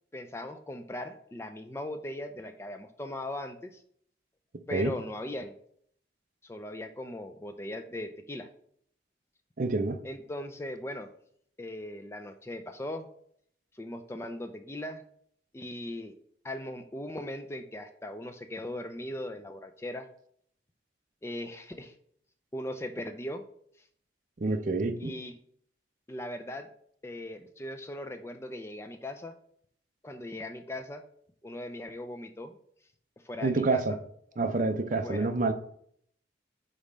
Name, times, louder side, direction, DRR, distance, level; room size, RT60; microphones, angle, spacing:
voice 1, 0.1-3.8 4.7-5.5 6.4-8.5 10.0-11.1 11.6-13.1 13.7-15.0 15.5-16.1 16.4-20.1 21.2-21.9 22.5-23.4 25.0-25.4 26.1-26.7 27.0-29.4 30.0-31.0 31.4-32.6 33.2-34.0 35.0-35.3, left 1 dB, 15° left, 7 dB, 0.3 m, -39 dB
voice 2, 9.6-10.0 24.4-25.1 33.4-33.9 34.4-35.5, right 3 dB, 45° right, 9 dB, 0.5 m, -27 dB
5.2 x 4.2 x 5.0 m, 0.65 s
head